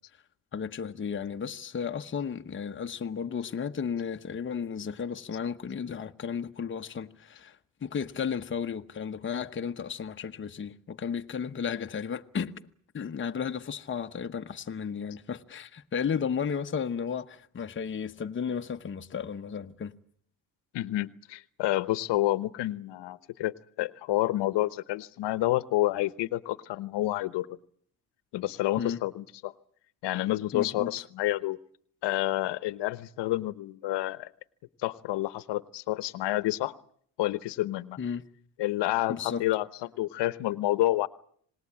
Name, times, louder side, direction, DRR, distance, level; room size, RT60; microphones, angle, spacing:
voice 1, 0.5-7.6 7.8-19.9 28.8-29.0 30.5-30.9 38.0-38.3 39.1-39.4, left 7 dB, 30° left, 1.0 m, -34 dB
voice 2, 20.7-27.5 28.3-29.5 30.0-31.6 32.0-34.3 34.8-36.7 37.2-38.0 38.6-41.1, left 16 dB, 75° left, 1.0 m, -29 dB
26.5 x 19.5 x 8.7 m
cardioid pair, 125°, 42 cm